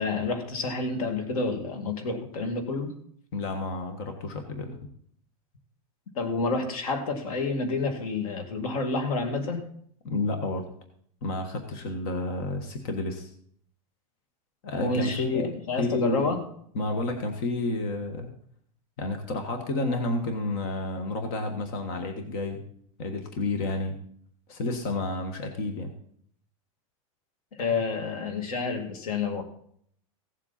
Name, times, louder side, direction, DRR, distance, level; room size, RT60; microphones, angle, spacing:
voice 1, 0.0-2.9 6.2-9.6 14.8-16.4 27.6-29.4, left 3 dB, 90° left, 5 dB, 2.4 m, -29 dB
voice 2, 3.3-4.8 10.0-10.6 11.2-13.3 14.6-15.5 15.8-16.3 16.7-18.3 19.0-22.6 23.0-24.0 24.5-25.9, left 2 dB, 40° left, 5 dB, 1.5 m, -30 dB
16.5 x 7.5 x 4.2 m, 0.63 s
supercardioid pair, 175°, 18 cm